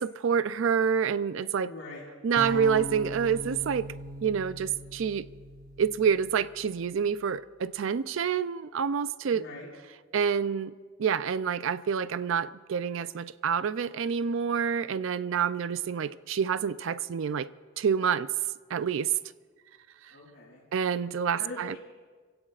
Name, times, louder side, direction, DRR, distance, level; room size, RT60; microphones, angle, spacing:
voice 1, 0.0-1.7 2.2-3.9 4.2-5.3 5.8-9.4 10.1-10.7 11.0-17.5 17.8-18.3 18.7-19.1 20.7-21.8, right 7 dB, 70° right, 0.4 m, -27 dB
voice 2, 1.6-2.0 9.3-9.7 20.1-20.6 21.4-21.8, left 2 dB, 70° left, 5.8 m, -42 dB
sound 1, 2.4-6.5, equal, 45° right, 3.9 m, -40 dB
27.5 x 16.5 x 2.4 m
head